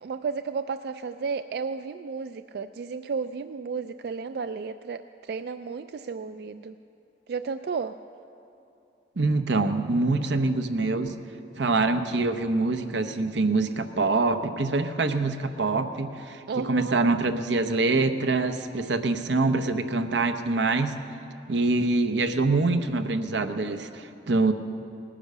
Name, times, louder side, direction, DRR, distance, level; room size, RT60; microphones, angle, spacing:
voice 1, 0.0-6.8 7.3-7.9 16.5-17.0, right 5 dB, 60° right, 10 dB, 0.3 m, -33 dB
voice 2, 9.2-11.2 11.6-20.9 21.5-24.5, right 3 dB, 90° right, 8 dB, 0.8 m, -25 dB
19.0 x 10.0 x 6.7 m, 2.7 s
head